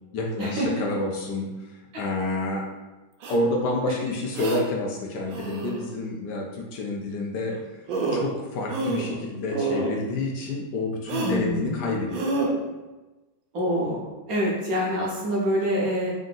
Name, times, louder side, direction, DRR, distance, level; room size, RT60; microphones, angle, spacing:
voice 1, 0.1-2.7 3.3-7.8 8.1-12.5, left 2 dB, 70° left, 0 dB, 1.1 m, -29 dB
sound 1, 3.2-3.4 4.3-4.6 5.3-5.8 7.5-7.6 7.9-8.3 8.7-9.2 9.5-9.9 11.1-11.4 12.1-12.5, right 3 dB, 90° right, 1.4 m, -28 dB
voice 2, 11.2-11.8 13.5-16.1, equal, 60° right, -4 dB, 1.0 m, -26 dB
3.7 x 2.6 x 3.7 m, 1.2 s
omnidirectional pair, 2.0 m